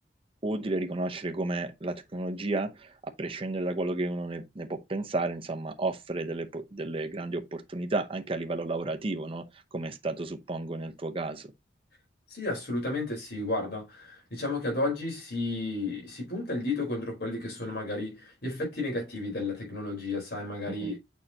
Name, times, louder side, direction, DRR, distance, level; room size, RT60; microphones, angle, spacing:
voice 1, 0.4-9.5 9.7-11.5 20.8-20.9, right 2 dB, 30° right, 0.8 m, -32 dB
voice 2, 12.3-21.0, left 2 dB, 60° left, 4.3 m, -32 dB
6.7 x 5.6 x 2.8 m
head